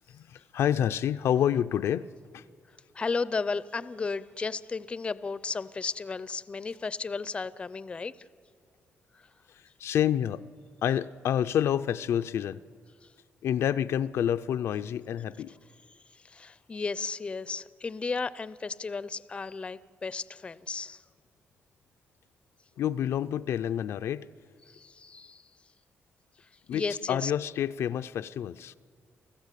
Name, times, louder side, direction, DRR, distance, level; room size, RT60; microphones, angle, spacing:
voice 1, 0.1-2.1 2.3-2.4 9.8-10.4 10.8-12.6 13.4-15.5 22.8-24.3 26.7-28.7, left 10 dB, 75° left, 0.5 m, -28 dB
voice 2, 2.9-8.1 16.2-21.0 24.7-25.4 26.7-27.3, left 4 dB, 25° left, 0.5 m, -34 dB
29.0 x 14.5 x 8.3 m
cardioid pair, 135°, 5 cm